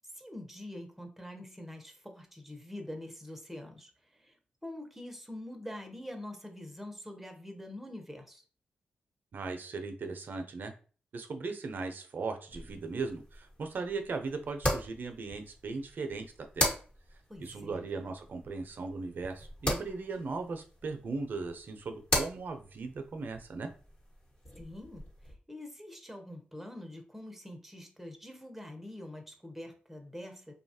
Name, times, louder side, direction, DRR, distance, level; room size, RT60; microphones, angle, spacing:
voice 1, 0.1-4.4 4.6-8.4 17.3-17.8 24.6-30.5, left 1 dB, 5° right, 4 dB, 0.7 m, -45 dB
voice 2, 9.3-10.7 11.1-16.3 16.5-16.8 17.4-23.7, right 4 dB, 60° right, 5 dB, 0.6 m, -38 dB
sound 1, 12.5-25.3, left 1 dB, 35° left, 1.2 m, -38 dB
2.7 x 2.3 x 2.7 m, 0.39 s
cardioid pair, 60°, 4 cm